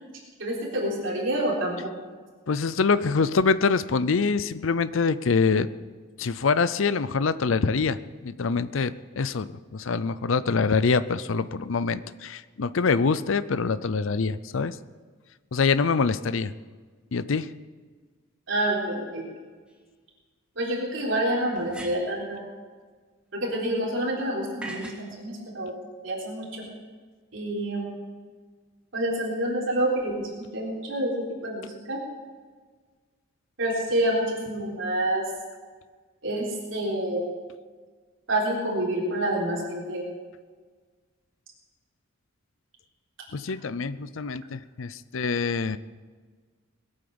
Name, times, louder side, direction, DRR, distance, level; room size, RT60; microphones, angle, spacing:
voice 1, 0.4-1.7 18.5-19.3 20.6-22.4 23.3-25.7 26.0-26.7 27.3-27.9 28.9-32.0 33.6-35.2 36.2-37.2 38.3-40.0, right 1 dB, 65° right, -4 dB, 3.8 m, -28 dB
voice 2, 2.5-5.7 6.2-14.8 15.5-16.5 17.1-17.5 43.3-45.8, left 4 dB, 70° left, 15 dB, 0.5 m, -25 dB
sound 1, 19.7-19.8 21.5-22.2 24.6-25.1, right 2 dB, 5° right, 1.7 m, -40 dB
20.5 x 8.9 x 7.0 m, 1.5 s
head